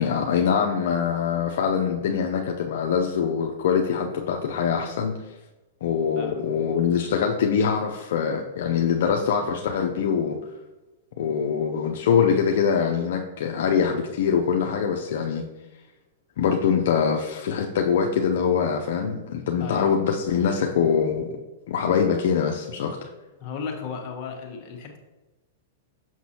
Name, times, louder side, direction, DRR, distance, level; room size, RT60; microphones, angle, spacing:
voice 1, 0.0-5.2 5.8-10.4 11.2-15.4 16.4-21.4 21.7-23.0, left 7 dB, 65° left, 1 dB, 0.5 m, -23 dB
voice 2, 19.6-20.0 23.4-25.0, left 5 dB, 40° left, 0 dB, 1.2 m, -34 dB
6.1 x 5.9 x 2.9 m, 1.1 s
hypercardioid pair, 135°, 0 cm